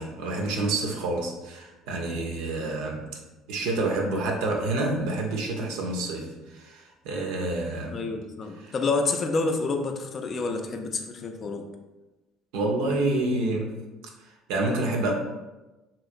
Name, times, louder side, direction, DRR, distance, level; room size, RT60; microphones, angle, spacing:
voice 1, 0.0-3.2 3.5-8.0 8.6-8.7 12.5-13.7 14.5-15.1, right 2 dB, 70° right, 1 dB, 0.5 m, -28 dB
voice 2, 7.9-11.7, left 3 dB, 45° left, 4 dB, 0.4 m, -28 dB
3.0 x 2.7 x 2.5 m, 1.1 s
hypercardioid pair, 60°, 0 cm